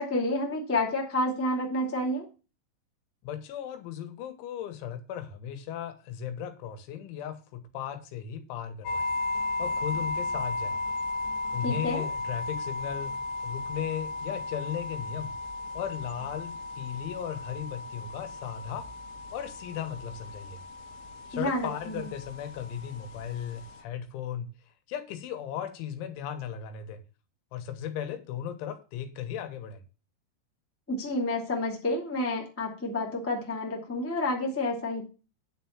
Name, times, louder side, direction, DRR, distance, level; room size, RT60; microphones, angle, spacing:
voice 1, 0.0-2.2 11.6-12.0 21.3-22.0 30.9-35.0, left 1 dB, 15° left, -1 dB, 0.4 m, -29 dB
voice 2, 3.2-9.1 9.6-10.8 11.5-13.1 13.4-15.3 15.7-18.9 19.3-20.6 21.3-24.5 24.9-27.0 27.5-29.8, left 9 dB, 85° left, 9 dB, 3.6 m, -36 dB
sound 1, 8.9-23.8, left 2 dB, 70° left, 2.8 m, -35 dB
9.9 x 4.6 x 7.2 m, 0.33 s
omnidirectional pair, 5.3 m